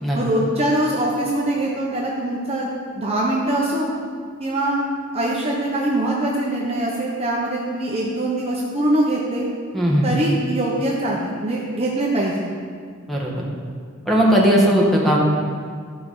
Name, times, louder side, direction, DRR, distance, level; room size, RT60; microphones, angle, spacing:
voice 1, 0.1-2.7 3.0-3.9 4.4-4.8 5.1-9.4 10.0-12.5, right 1 dB, 30° right, -4 dB, 1.0 m, -23 dB
voice 2, 9.7-10.1 13.1-13.4 14.0-15.2, equal, ahead, -4 dB, 1.7 m, -17 dB
14.0 x 4.7 x 5.6 m, 2.1 s
head